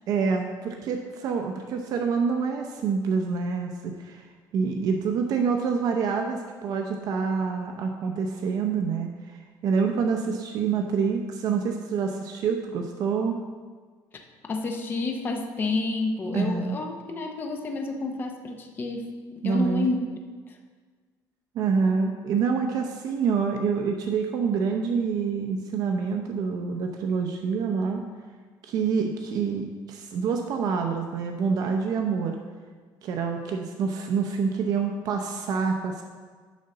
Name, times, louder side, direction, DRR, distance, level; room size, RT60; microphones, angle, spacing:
voice 1, 0.1-4.2 4.5-9.4 9.6-13.4 16.3-16.8 19.4-19.9 21.5-28.0 28.6-32.4 33.0-36.0, right 5 dB, 55° right, 3 dB, 0.7 m, -27 dB
voice 2, 14.5-19.1 19.4-20.0, left 3 dB, 25° left, 3 dB, 0.8 m, -29 dB
9.3 x 4.0 x 6.6 m, 1.5 s
cardioid pair, 160°, 8 cm